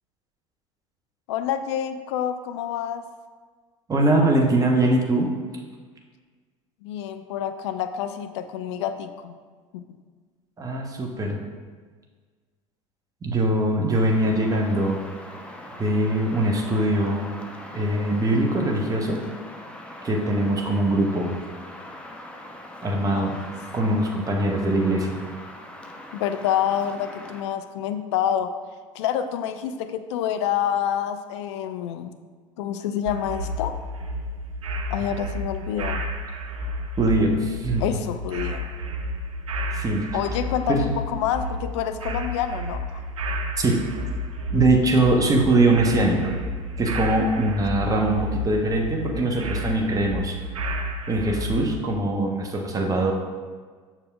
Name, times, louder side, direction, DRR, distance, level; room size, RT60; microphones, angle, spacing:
voice 1, 1.3-3.0 6.8-9.4 9.7-9.8 23.2-23.6 23.8-23.9 26.1-28.5 28.9-32.1 32.6-33.8 34.9-36.0 37.8-38.7 40.1-43.0, left 9 dB, 55° left, 9 dB, 0.5 m, -27 dB
voice 2, 3.9-5.3 10.6-11.4 13.2-15.0 15.8-17.3 17.7-19.2 20.0-21.3 22.8-23.4 23.7-25.2 37.0-37.9 39.7-40.1 40.7-40.8 43.6-43.8 44.5-46.4 46.8-50.4 51.1-53.1, right 1 dB, 20° right, 1 dB, 1.0 m, -22 dB
sound 1, 13.9-27.4, left 1 dB, 5° left, 0.6 m, -41 dB
sound 2, 33.1-51.7, equal, 70° right, 0.6 m, -31 dB
7.1 x 6.5 x 2.4 m, 1.5 s
figure-of-eight pair, 75°, 17 cm